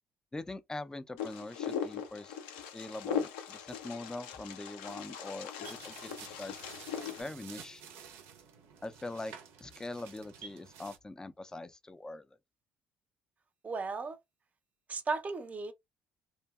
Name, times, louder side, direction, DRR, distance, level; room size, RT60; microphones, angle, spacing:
voice 1, 0.3-2.4 2.7-6.5 7.0-7.8 8.8-9.3 9.6-12.3, left 2 dB, 15° left, 0.4 m, -43 dB
Wind, 1.2-7.2, left 8 dB, 85° left, 0.4 m, -39 dB
sound 1, 5.6-11.0, right 7 dB, 80° right, 0.5 m, -51 dB
voice 2, 13.6-14.2 14.9-15.7, right 4 dB, 35° right, 0.6 m, -35 dB
2.7 x 2.0 x 2.3 m
hypercardioid pair, 60°, 4 cm